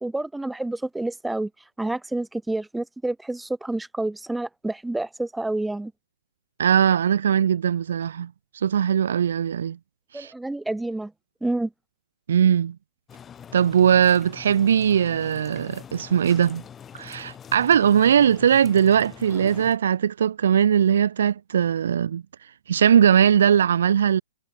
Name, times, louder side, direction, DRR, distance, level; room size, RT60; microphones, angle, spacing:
voice 1, 0.0-1.5 1.8-5.9 10.1-11.1 11.4-11.7, right 2 dB, 5° right, 1.1 m, -28 dB
voice 2, 6.6-9.8 10.1-10.3 12.3-12.8 13.5-16.6 16.9-22.2 22.7-24.2, right 8 dB, 65° right, 0.3 m, -20 dB
sound 1, 13.1-19.8, left 8 dB, 15° left, 1.5 m, -43 dB
hypercardioid pair, 130°, 0 cm